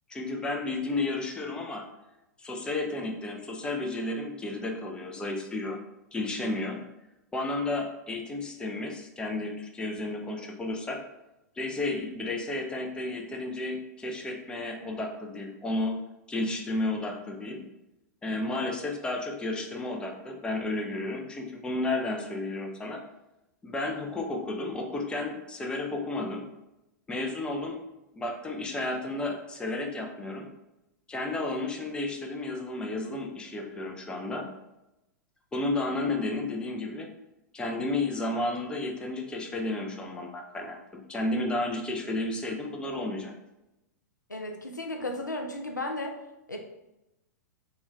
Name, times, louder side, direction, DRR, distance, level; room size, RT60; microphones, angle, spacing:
voice 1, 0.1-1.8 2.4-5.8 6.1-6.8 7.3-11.0 11.6-16.0 16.3-17.6 18.2-23.0 23.6-26.4 27.1-27.8 28.1-30.5 31.1-34.5 35.5-37.1 37.5-40.8 41.1-43.3, left 2 dB, 10° left, 2 dB, 0.3 m, -32 dB
voice 2, 44.3-46.2 46.5-46.6, left 2 dB, 85° left, 2 dB, 0.4 m, -34 dB
2.2 x 2.2 x 3.4 m, 0.92 s
figure-of-eight pair, 100°, 10 cm